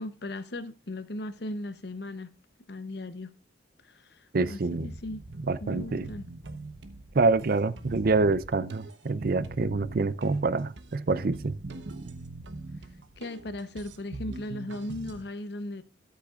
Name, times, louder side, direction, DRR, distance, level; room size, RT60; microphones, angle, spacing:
voice 1, 0.0-2.3 2.7-3.3 3.8-5.2 5.6-6.3 13.2-15.8, left 1 dB, 65° left, 0.9 m, -37 dB
voice 2, 4.3-4.9 5.4-6.1 7.1-11.6, right 3 dB, 55° right, 0.6 m, -26 dB
sound 1, 4.7-15.2, right 2 dB, 80° right, 1.0 m, -42 dB
13.0 x 8.3 x 2.4 m
head